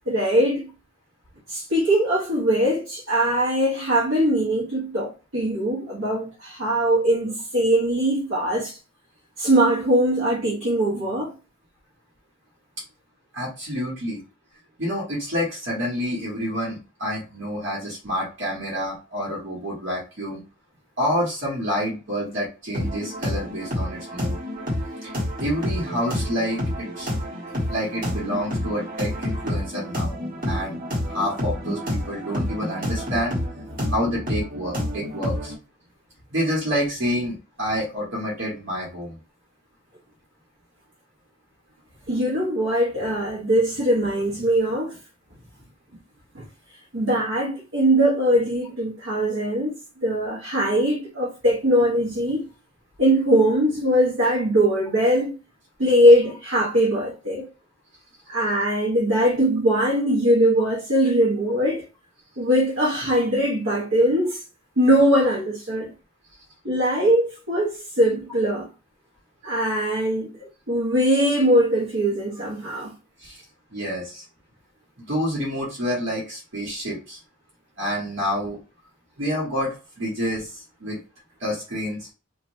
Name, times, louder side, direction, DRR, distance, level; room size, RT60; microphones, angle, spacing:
voice 1, 0.1-0.7 1.5-8.8 9.4-11.3 42.1-45.0 46.3-46.4 46.9-49.7 50.0-52.5 53.0-55.3 55.8-57.5 58.3-61.8 62.4-64.4 64.8-65.9 66.6-68.7 69.4-70.4 70.7-72.9, equal, 80° right, 1.0 m, -21 dB
voice 2, 13.3-14.2 14.8-20.4 21.0-24.4 25.0-25.1 25.4-27.1 27.7-30.1 30.4-30.8 31.1-33.4 33.9-35.5 36.3-39.2 73.2-73.4 73.7-74.2 75.0-77.2 77.8-78.6 79.2-81.0 81.4-82.1, equal, 65° right, 1.2 m, -28 dB
sound 1, 22.7-35.6, left 1 dB, 45° right, 1.2 m, -29 dB
3.1 x 2.4 x 2.6 m
head